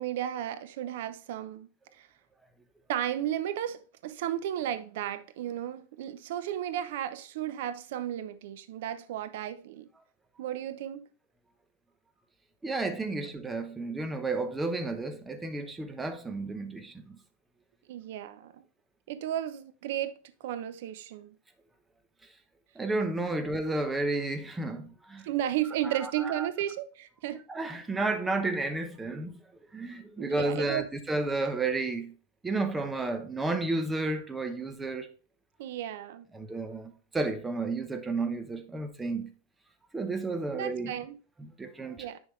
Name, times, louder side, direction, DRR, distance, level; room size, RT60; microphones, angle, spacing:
voice 1, 0.0-2.1 2.9-9.9 10.4-11.1 17.9-18.6 19.1-21.3 23.3-23.4 25.2-27.4 30.2-30.9 35.6-36.2 40.5-41.2 42.0-42.2, right 11 dB, 65° right, 0.7 m, -34 dB
voice 2, 12.6-17.2 22.7-25.3 25.8-26.5 27.5-29.3 29.7-32.1 32.4-35.1 36.3-39.3 39.9-40.9 41.4-42.0, right 3 dB, 10° right, 0.9 m, -32 dB
10.0 x 3.6 x 3.1 m
supercardioid pair, 140°, 0 cm